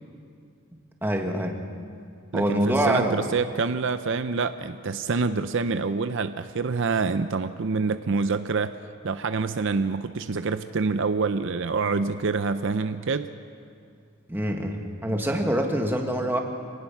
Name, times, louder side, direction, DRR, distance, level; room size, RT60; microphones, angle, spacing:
voice 1, 1.0-1.6 2.3-3.2 14.3-16.4, right 1 dB, 10° right, 3 dB, 1.6 m, -25 dB
voice 2, 2.3-8.8 9.0-13.3, right 4 dB, 55° right, 10 dB, 0.5 m, -26 dB
26.5 x 18.5 x 6.0 m, 2.4 s
head